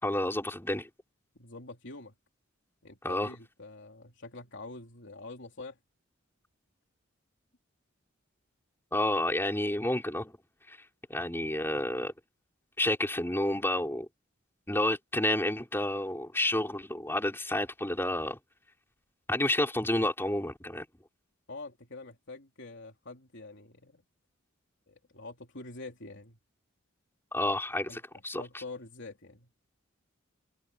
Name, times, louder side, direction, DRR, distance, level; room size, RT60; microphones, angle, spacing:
voice 1, 0.0-0.9 3.0-3.3 8.9-10.4 10.7-12.1 12.8-14.1 14.7-18.4 19.3-20.9 27.3-28.6, left 1 dB, 10° left, 4.2 m, -30 dB
voice 2, 1.3-2.1 2.8-5.8 21.5-24.0 24.9-26.4 27.9-28.0 28.4-29.5, left 3 dB, 60° left, 3.3 m, -45 dB
head